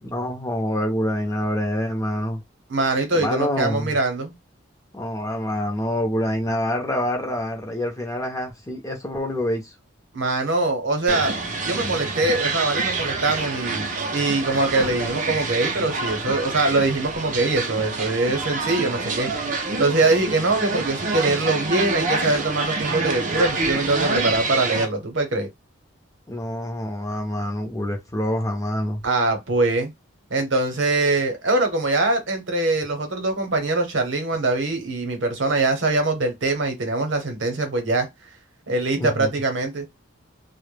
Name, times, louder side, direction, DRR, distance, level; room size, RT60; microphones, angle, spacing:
voice 1, 0.0-2.4 3.1-3.9 4.9-9.7 26.3-29.0 39.0-39.3, left 1 dB, 15° left, 0.5 m, -26 dB
voice 2, 2.7-4.3 10.1-11.4 11.7-25.5 29.0-29.9 30.3-38.1 38.7-39.9, right 2 dB, 65° right, 0.8 m, -23 dB
sound 1, 11.1-24.9, right 3 dB, 40° right, 0.5 m, -27 dB
2.1 x 2.0 x 3.2 m
head